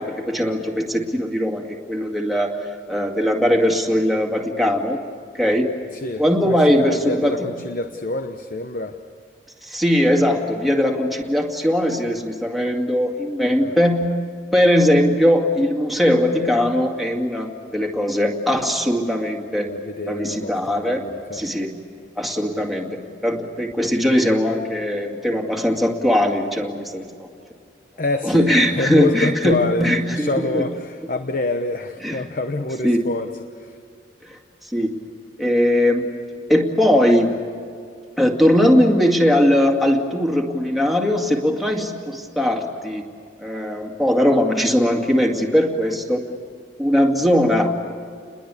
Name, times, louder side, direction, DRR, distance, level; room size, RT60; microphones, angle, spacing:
voice 1, 0.0-2.6 2.9-5.0 5.3-5.7 6.2-7.5 9.6-14.1 14.5-19.7 20.1-21.0 21.3-21.7 22.2-22.9 23.2-27.3 28.2-30.6 32.0-32.2 32.8-33.0 34.7-34.9 35.4-36.1 36.5-37.4 38.2-43.1 43.4-46.2 46.8-47.8, equal, ahead, 0 dB, 2.2 m, -19 dB
voice 2, 5.9-9.0 13.6-13.8 19.7-21.4 28.0-33.3 33.6-33.8, left 2 dB, 45° left, 7 dB, 1.0 m, -26 dB
30.0 x 21.5 x 8.4 m, 2.2 s
head